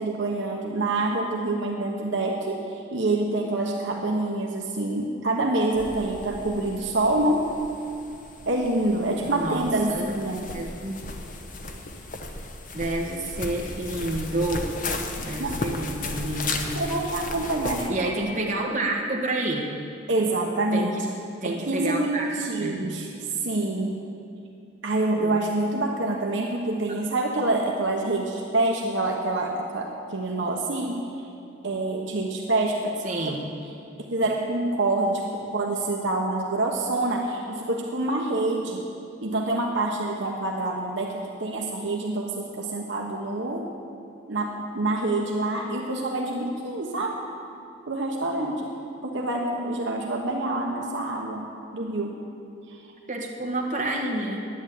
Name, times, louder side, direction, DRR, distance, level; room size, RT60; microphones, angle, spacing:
voice 1, 0.0-7.5 8.5-10.5 15.4-15.6 16.7-18.1 20.1-20.9 21.4-23.1 23.4-23.9 24.8-31.3 31.6-33.0 33.3-33.4 34.1-35.2 35.5-38.8 39.2-43.7 44.3-47.2 47.9-48.7 49.0-51.4 51.7-52.2 52.7-52.8, right 2 dB, 60° right, 0 dB, 1.1 m, -26 dB
sound 1, 5.7-17.9, left 2 dB, 40° left, 0.9 m, -35 dB
voice 2, 9.2-10.1 10.5-11.0 12.7-14.7 15.2-16.8 17.9-19.7 20.7-21.0 21.4-22.3 22.6-22.9 25.2-25.4 33.0-33.4 50.7-50.9 53.1-54.4, right 2 dB, 35° right, -1 dB, 1.5 m, -29 dB
11.0 x 9.5 x 8.3 m, 2.6 s
head